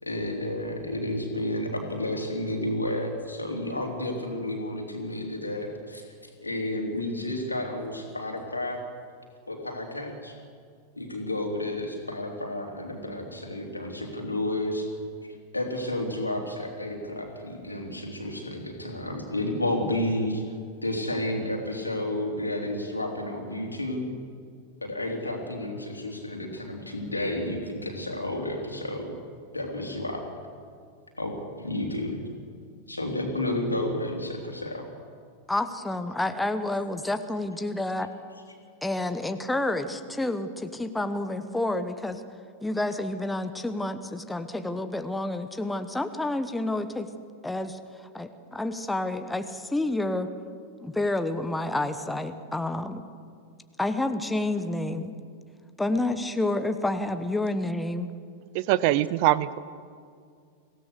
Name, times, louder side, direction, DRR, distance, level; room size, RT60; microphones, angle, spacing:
voice 1, 0.0-8.8 9.5-10.4 10.9-14.9 15.5-20.4 20.8-24.1 24.8-29.1 29.5-30.2 31.2-32.2 32.9-34.8, left 1 dB, 85° left, 1 dB, 3.4 m, -31 dB
voice 2, 35.5-38.1 38.8-42.2 42.6-47.1 47.4-50.3 50.8-53.0 53.8-55.1 55.8-58.1, left 2 dB, 5° left, 9 dB, 1.1 m, -29 dB
voice 3, 58.5-59.6, right 15 dB, 45° right, 18 dB, 0.7 m, -23 dB
24.5 x 16.5 x 6.6 m, 2.2 s
figure-of-eight pair, 90°, 0 cm